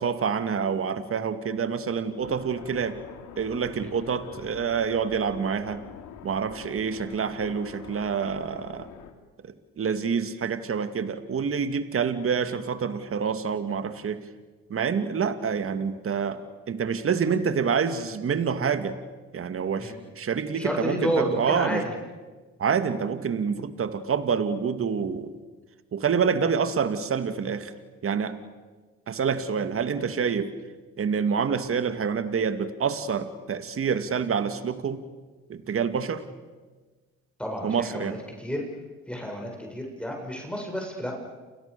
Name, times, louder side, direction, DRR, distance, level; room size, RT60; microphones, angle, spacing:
voice 1, 0.0-3.0 3.4-5.8 6.2-8.9 9.8-14.2 14.7-16.4 16.7-19.0 19.3-21.8 22.6-25.3 25.9-27.7 28.0-28.4 29.1-30.5 31.0-35.0 35.5-36.2 37.6-38.2, right 6 dB, 45° right, 10 dB, 2.4 m, -27 dB
sound 1, 2.2-9.1, left 9 dB, 70° left, 3.1 m, -45 dB
voice 2, 20.5-21.9 37.4-38.6 39.1-41.1, equal, 5° left, 0 dB, 7.5 m, -30 dB
29.5 x 28.5 x 7.0 m, 1.3 s
hypercardioid pair, 65°, 32 cm